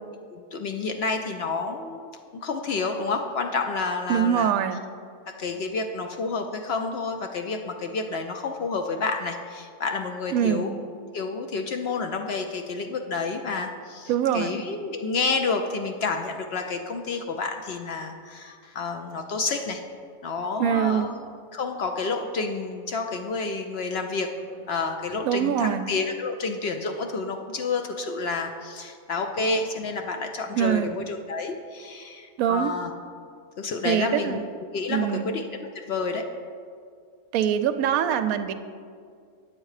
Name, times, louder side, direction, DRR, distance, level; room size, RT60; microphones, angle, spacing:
voice 1, 0.3-4.5 5.3-10.7 11.1-19.8 20.2-21.1 21.5-24.4 24.7-32.9 33.6-34.4 34.7-36.4, left 4 dB, 75° left, 5 dB, 0.5 m, -29 dB
voice 2, 4.1-4.8 10.3-10.7 14.1-14.5 20.6-21.1 25.2-25.9 30.5-30.9 32.4-32.7 33.8-34.4 34.9-35.3 37.3-38.5, right 9 dB, 70° right, 9 dB, 0.9 m, -23 dB
8.8 x 7.6 x 4.8 m, 2.2 s
omnidirectional pair, 1.7 m